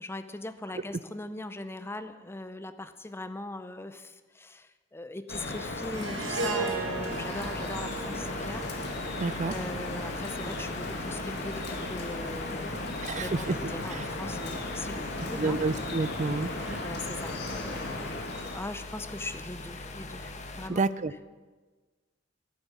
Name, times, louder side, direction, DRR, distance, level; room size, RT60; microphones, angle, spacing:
voice 1, 0.0-8.7 9.4-15.6 16.8-20.8, left 2 dB, 15° left, 10 dB, 0.6 m, -40 dB
Drip, 5.3-18.6, left 2 dB, 60° left, 1.9 m, -36 dB
Harp, 5.9-10.4, right 3 dB, 85° right, 1.6 m, -36 dB
sound 1, 7.1-20.7, left 2 dB, 40° left, 1.1 m, -42 dB
voice 2, 9.2-9.5 13.0-13.6 15.4-16.8 20.7-21.1, right 3 dB, 40° right, 16 dB, 0.5 m, -29 dB
14.5 x 9.4 x 7.3 m, 1.3 s
head